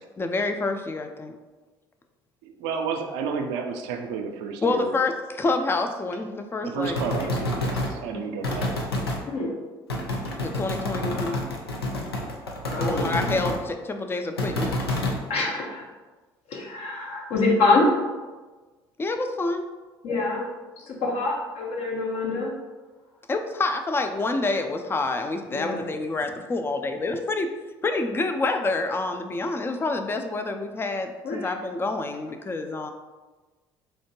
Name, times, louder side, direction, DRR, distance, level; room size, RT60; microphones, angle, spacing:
voice 1, 0.2-1.3 4.6-6.9 10.4-11.4 12.8-14.7 19.0-19.7 23.3-27.5 27.8-32.9, left 3 dB, 20° left, 6 dB, 0.4 m, -27 dB
voice 2, 2.4-4.9 6.6-8.9, right 5 dB, 70° right, 4 dB, 0.5 m, -31 dB
sound 1, 6.8-8.0 8.4-9.2 9.9-13.6 14.4-15.2, left 1 dB, 90° left, 0.5 m, -28 dB
voice 3, 9.3-9.6 10.2-10.4 12.6-13.1 15.3-15.8 16.5-18.0 20.0-20.5 20.8-22.5 25.5-25.8 31.2-31.5, left 3 dB, 55° left, -1 dB, 0.9 m, -25 dB
4.3 x 2.8 x 2.9 m, 1.3 s
figure-of-eight pair, 55°, 12 cm